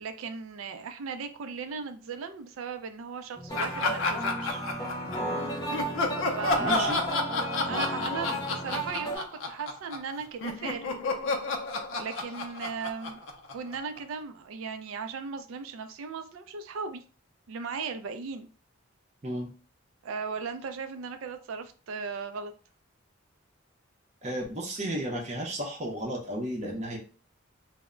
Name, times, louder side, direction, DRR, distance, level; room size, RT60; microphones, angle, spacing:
voice 1, 0.0-4.6 6.3-7.0 7.7-10.9 12.0-13.2 13.5-17.0 17.5-18.5 20.0-22.5, right 5 dB, 75° right, 0.4 m, -37 dB
sound 1, 3.3-8.9, equal, 10° right, 1.0 m, -44 dB
sound 2, 3.5-9.2, right 1 dB, 20° left, 0.5 m, -35 dB
Laughter, 3.6-5.3 5.7-10.1 10.4-14.0, left 3 dB, 70° left, 0.5 m, -31 dB
voice 2, 6.6-7.0 19.2-19.5 24.2-27.0, right 1 dB, 30° right, 0.6 m, -33 dB
2.1 x 2.0 x 3.6 m
head